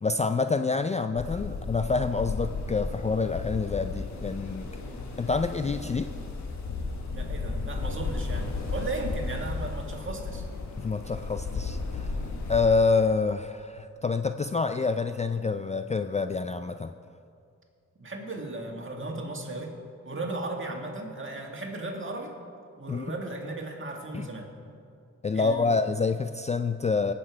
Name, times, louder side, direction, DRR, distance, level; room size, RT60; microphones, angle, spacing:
voice 1, 0.0-4.7 5.2-6.1 10.8-12.2 12.5-16.9 22.9-23.1 24.1-24.3 25.2-27.1, left 4 dB, 25° left, 9 dB, 0.4 m, -27 dB
sound 1, 1.2-12.7, left 3 dB, 65° left, 1.3 m, -34 dB
voice 2, 7.1-10.4 18.0-19.8 20.0-22.3 22.8-24.5 25.3-25.7, right 2 dB, 40° right, 2 dB, 1.9 m, -36 dB
18.0 x 6.7 x 4.6 m, 2.4 s
cardioid pair, 55°, 31 cm